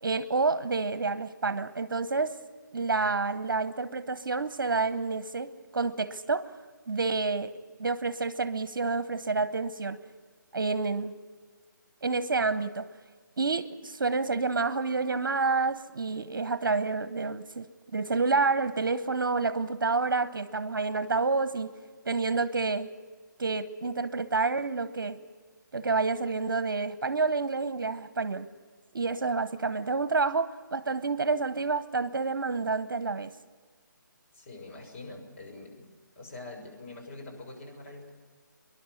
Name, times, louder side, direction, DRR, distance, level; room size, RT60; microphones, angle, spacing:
voice 1, 0.0-2.4 2.7-6.5 6.9-7.5 7.8-10.0 10.5-11.1 12.0-12.9 13.4-17.7 17.9-21.7 22.1-22.9 23.4-25.2 25.7-28.5 28.9-33.3, right 4 dB, 70° right, 12 dB, 1.0 m, -29 dB
voice 2, 34.3-35.8 36.1-38.1, left 2 dB, 40° left, 0 dB, 6.4 m, -44 dB
25.5 x 11.0 x 9.8 m, 1.5 s
figure-of-eight pair, 155°, 11 cm